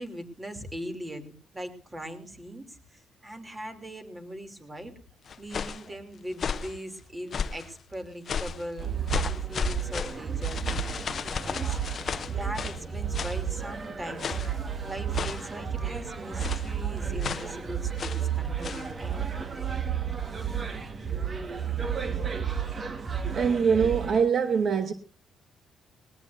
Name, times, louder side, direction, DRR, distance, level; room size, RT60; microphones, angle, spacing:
voice 1, 0.0-4.9 5.4-10.8 11.3-14.4 14.8-19.7, equal, 20° right, 2.9 m, -40 dB
sound 1, 5.3-5.9 6.3-6.8 7.3-7.7 8.3-8.6 9.1-12.8 13.1-13.4 14.2-14.6 15.1-15.5 16.4-16.7 17.2-17.5 18.0-18.3 18.6-18.9, left 6 dB, 50° left, 0.7 m, -33 dB
sound 2, 8.8-24.2, right 7 dB, 35° right, 1.5 m, -32 dB
voice 2, 23.3-24.9, right 6 dB, 55° right, 1.0 m, -23 dB
19.0 x 19.0 x 2.6 m
cardioid pair, 90°, 0 cm